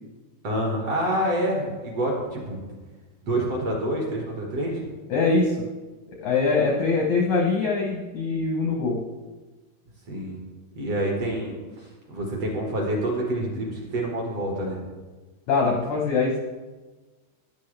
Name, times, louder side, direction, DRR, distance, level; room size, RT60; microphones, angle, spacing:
voice 1, 0.4-2.8 3.2-4.8 10.1-10.4 10.8-14.8, right 1 dB, 50° right, -1 dB, 1.9 m, -27 dB
voice 2, 5.1-5.6 6.2-9.0 15.5-16.4, left 4 dB, 80° left, -1 dB, 1.7 m, -23 dB
14.0 x 11.0 x 3.4 m, 1.3 s
omnidirectional pair, 5.1 m